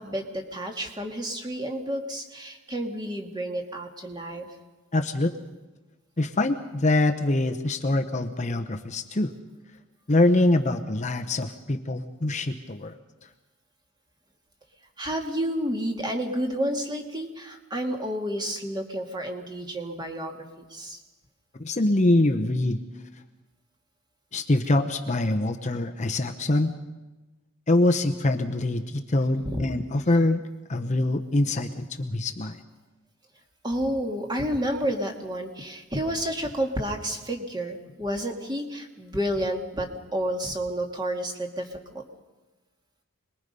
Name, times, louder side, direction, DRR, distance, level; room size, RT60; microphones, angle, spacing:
voice 1, 0.0-4.5 15.0-21.0 29.4-29.6 33.6-42.0, equal, 20° right, 2 dB, 2.1 m, -30 dB
voice 2, 4.9-5.3 6.2-9.3 10.1-12.9 21.6-22.8 24.3-26.7 27.7-30.4 30.7-32.6, left 2 dB, 35° left, 6 dB, 0.9 m, -24 dB
26.5 x 21.0 x 5.4 m, 1.2 s
head